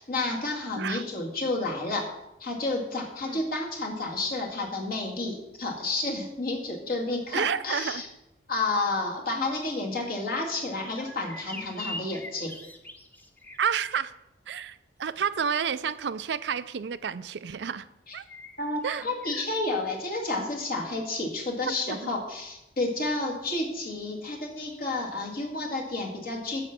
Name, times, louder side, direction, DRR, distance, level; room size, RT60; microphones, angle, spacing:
voice 1, 0.0-2.1 2.4-8.1 8.5-12.5 18.1-18.2 18.6-26.6, left 2 dB, 55° left, 0 dB, 2.1 m, -30 dB
voice 2, 7.3-8.0 13.6-14.1 14.5-17.9 18.1-18.2 18.8-19.0 21.9-22.0, right 7 dB, 70° right, 14 dB, 0.4 m, -30 dB
sound 1, 10.9-14.1 18.3-19.5, left 1 dB, 10° left, 0.7 m, -42 dB
9.0 x 7.1 x 5.9 m, 0.91 s
head